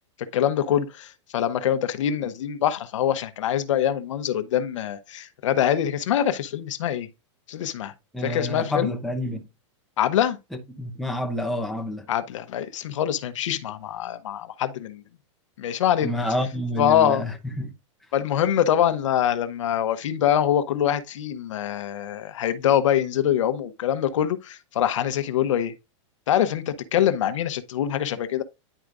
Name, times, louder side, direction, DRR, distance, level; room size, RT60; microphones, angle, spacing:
voice 1, 0.2-7.1 7.5-7.9 8.2-8.9 10.0-10.4 12.1-15.0 15.6-16.1 16.8-17.2 18.1-25.7 26.3-28.4, left 10 dB, 75° left, 0.9 m, -24 dB
voice 2, 8.1-9.4 10.8-12.1 16.0-17.7, left 1 dB, ahead, 0.8 m, -28 dB
10.0 x 4.7 x 2.6 m
supercardioid pair, 165°, 16 cm